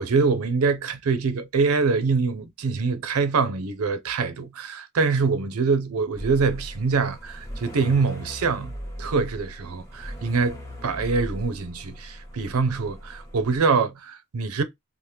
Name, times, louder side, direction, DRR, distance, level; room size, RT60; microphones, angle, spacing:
voice 1, 0.0-8.7 9.0-14.6, right 4 dB, 80° right, 0.5 m, -24 dB
sound 1, 6.1-13.6, equal, 15° left, 0.8 m, -39 dB
2.8 x 2.1 x 3.2 m
head